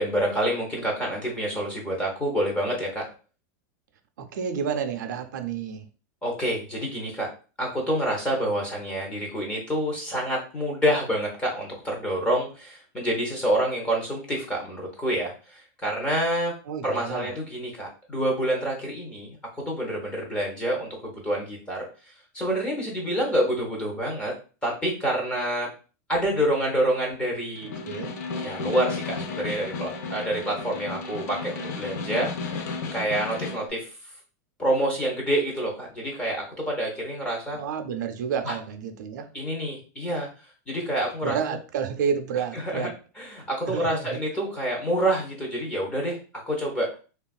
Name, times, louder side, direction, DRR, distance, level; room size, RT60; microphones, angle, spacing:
voice 1, 0.0-3.0 6.2-7.3 7.6-16.5 16.8-21.9 22.3-24.3 24.6-25.7 26.1-27.8 28.4-32.3 32.9-33.9 34.6-37.6 38.4-38.5 39.3-40.3 40.7-41.4 42.5-42.9 43.2-46.2 46.5-46.9, right 1 dB, 10° left, -1 dB, 0.7 m, -27 dB
voice 2, 4.2-5.9 16.7-17.3 27.9-28.1 37.5-39.3 41.2-42.9 43.7-44.2, right 7 dB, 85° right, 6 dB, 0.5 m, -30 dB
Snare drum, 27.6-33.7, left 4 dB, 65° left, 0.5 m, -33 dB
3.3 x 2.3 x 2.3 m, 0.35 s
supercardioid pair, 170°, 10 cm